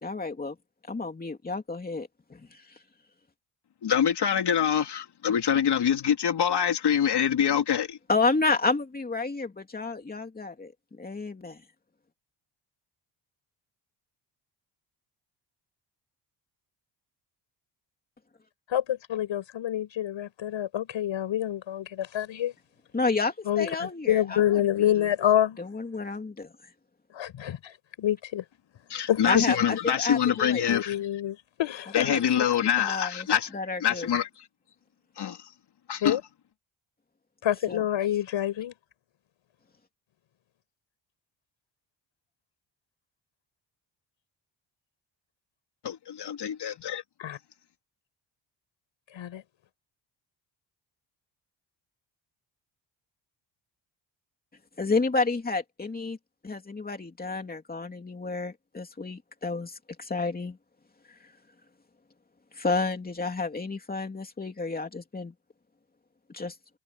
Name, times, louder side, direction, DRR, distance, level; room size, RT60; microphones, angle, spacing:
voice 1, 0.0-0.5 0.9-2.6 8.1-11.6 22.9-24.6 24.9-25.1 25.6-26.5 29.3-30.6 32.0-32.2 32.8-33.3 33.5-34.1 37.7-37.8 54.8-56.2 56.4-60.6 62.5-65.3 66.3-66.5, left 3 dB, 20° left, 2.8 m, -30 dB
voice 2, 3.8-8.0 28.9-31.0 31.9-34.5 35.2-35.5 35.9-36.2 45.8-47.0, left 9 dB, 55° left, 3.3 m, -25 dB
voice 3, 18.7-22.5 23.4-25.6 27.1-28.4 29.1-29.5 29.9-30.0 30.7-32.1 36.0-36.2 37.4-38.7 47.2-47.4 49.1-49.4, left 11 dB, 70° left, 6.8 m, -27 dB
cardioid pair, 155°, 47 cm